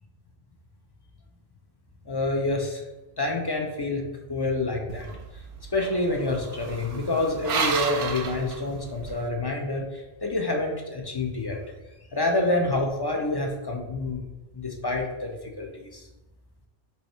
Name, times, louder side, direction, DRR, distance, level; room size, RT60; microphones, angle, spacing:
voice 1, 2.1-2.8 3.2-4.0 4.3-5.1 5.7-11.6 12.1-14.2 14.5-16.0, left 2 dB, 30° left, 1 dB, 0.4 m, -27 dB
sound 1, 4.9-9.2, right 5 dB, 60° right, 0.7 m, -32 dB
5.4 x 2.3 x 4.3 m, 1.0 s
omnidirectional pair, 1.1 m